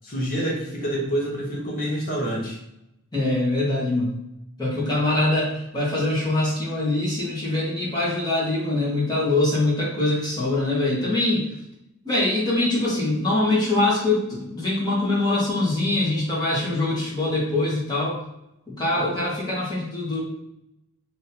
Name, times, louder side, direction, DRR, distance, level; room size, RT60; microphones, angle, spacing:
voice 1, 0.0-2.6, right 1 dB, 40° left, -3 dB, 1.2 m, -27 dB
voice 2, 3.1-4.1 4.6-11.5 12.0-18.2 18.7-20.2, left 2 dB, 20° left, -7 dB, 1.4 m, -23 dB
3.1 x 2.8 x 4.1 m, 0.83 s
head